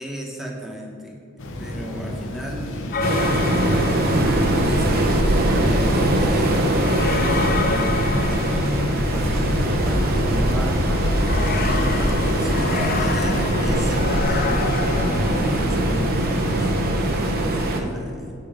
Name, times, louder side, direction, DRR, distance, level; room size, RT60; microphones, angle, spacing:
voice 1, 0.0-3.9 4.4-6.8 7.4-10.8 11.3-14.7 15.4-18.3, equal, ahead, -1 dB, 1.2 m, -36 dB
sound 1, 1.4-16.9, left 1 dB, 60° left, 0.8 m, -30 dB
sound 2, 2.9-4.7 6.8-9.3 11.2-15.6, left 5 dB, 40° left, 0.4 m, -29 dB
Waves surf, 3.0-17.8, right 1 dB, 45° right, 0.9 m, -21 dB
8.5 x 5.5 x 5.0 m, 2.6 s
head